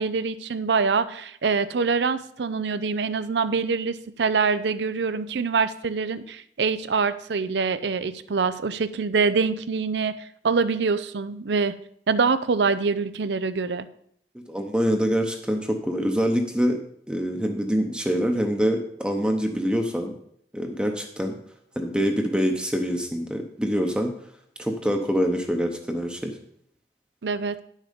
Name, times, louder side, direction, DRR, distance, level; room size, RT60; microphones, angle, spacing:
voice 1, 0.0-10.1 10.4-11.7 12.1-13.9 27.2-27.6, right 5 dB, 85° right, 13 dB, 0.6 m, -25 dB
voice 2, 14.5-16.8 17.1-20.2 20.5-21.4 21.8-24.1 24.6-26.4, equal, 5° right, 3 dB, 0.8 m, -25 dB
9.9 x 6.5 x 5.1 m, 0.69 s
head